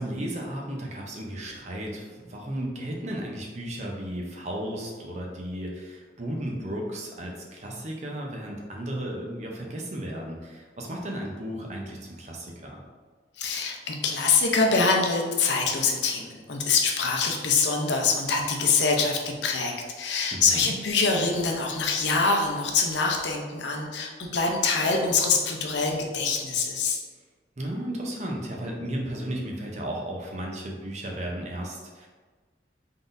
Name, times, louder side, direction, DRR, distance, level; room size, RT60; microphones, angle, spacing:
voice 1, 0.0-12.8 20.3-20.7 27.6-32.1, right 1 dB, 40° right, -1 dB, 0.7 m, -34 dB
voice 2, 13.3-27.0, left 4 dB, 80° left, 1 dB, 0.6 m, -24 dB
3.9 x 3.7 x 2.6 m, 1.4 s
head